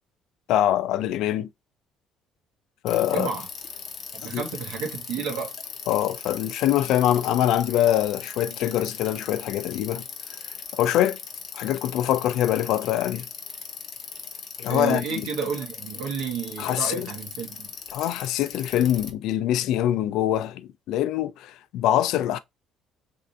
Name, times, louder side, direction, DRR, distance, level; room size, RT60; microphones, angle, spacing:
voice 1, 0.5-1.5 2.8-3.3 4.3-4.4 5.9-10.0 10.7-11.2 11.5-13.3 14.6-15.3 16.6-17.1 17.9-22.4, left 12 dB, 70° left, 0.4 m, -24 dB
Bicycle, 2.9-19.1, left 6 dB, 40° left, 0.7 m, -39 dB
voice 2, 3.1-3.5 4.1-5.5 14.7-17.7, right 6 dB, 85° right, 1.1 m, -31 dB
3.4 x 2.6 x 2.6 m
cardioid pair, 155°, 0 cm